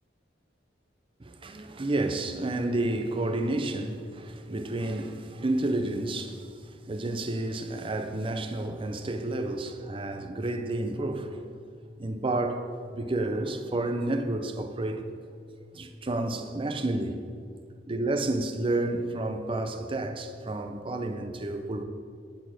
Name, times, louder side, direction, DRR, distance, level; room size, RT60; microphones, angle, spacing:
voice 1, 1.2-11.5 12.0-15.1 15.6-17.2 17.9-21.8, right 2 dB, 30° right, 0.6 m, -30 dB
10.5 x 4.3 x 7.7 m
head